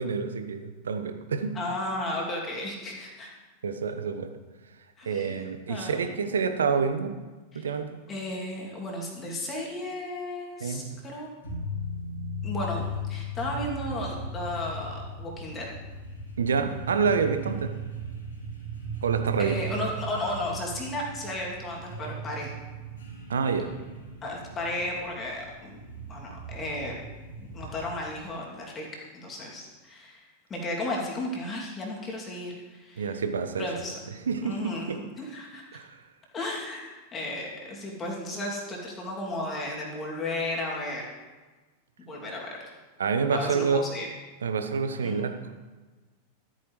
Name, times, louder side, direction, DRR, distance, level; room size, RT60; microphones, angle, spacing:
voice 1, 0.0-1.5 3.6-4.3 5.1-7.1 7.5-7.9 10.6-10.9 16.4-17.7 19.0-19.6 23.3-23.7 33.0-33.7 34.3-35.0 35.7-35.9 43.0-43.8 44.4-45.5, right 5 dB, 70° right, 8 dB, 0.8 m, -27 dB
voice 2, 1.5-3.3 5.0-6.2 7.5-7.6 8.1-11.3 12.4-15.7 19.4-22.5 24.2-26.9 27.4-28.9 29.1-33.2 33.6-34.0 34.4-35.8 36.3-41.0 42.1-42.6 43.3-44.1 45.0-45.3, left 1 dB, 25° left, -2 dB, 2.6 m, -34 dB
sound 1, 11.4-28.2, right 1 dB, 70° left, 3.1 m, -38 dB
13.5 x 9.2 x 3.2 m, 1.3 s
figure-of-eight pair, 90°, 0 cm